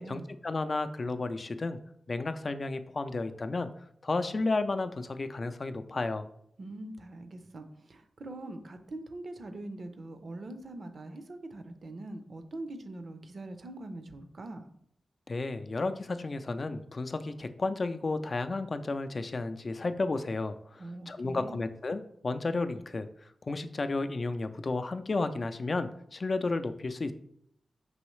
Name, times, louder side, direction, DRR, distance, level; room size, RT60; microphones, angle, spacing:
voice 1, 0.0-1.8 2.1-3.7 4.0-6.3 15.3-23.1 23.4-27.1, left 3 dB, 50° left, 9 dB, 0.4 m, -32 dB
voice 2, 6.6-14.7 20.8-21.6, right 2 dB, 65° right, 8 dB, 0.6 m, -43 dB
5.4 x 3.0 x 3.1 m, 0.71 s
cardioid pair, 60°, 0 cm